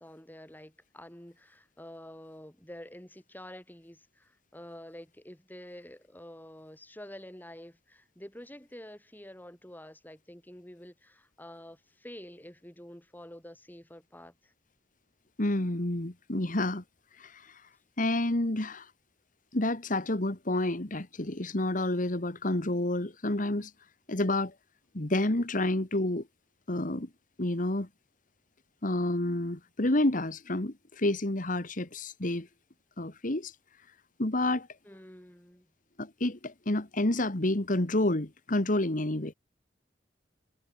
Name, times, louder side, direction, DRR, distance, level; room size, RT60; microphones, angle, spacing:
voice 1, 0.0-14.5 34.8-35.7, left 1 dB, 10° left, 7.3 m, -48 dB
voice 2, 15.4-16.8 17.1-17.7 18.0-18.9 19.5-23.7 24.1-24.5 24.9-26.2 26.7-27.1 27.4-27.9 28.8-32.5 33.0-33.6 34.2-34.7 36.0-39.3, left 1 dB, 50° left, 2.0 m, -29 dB
head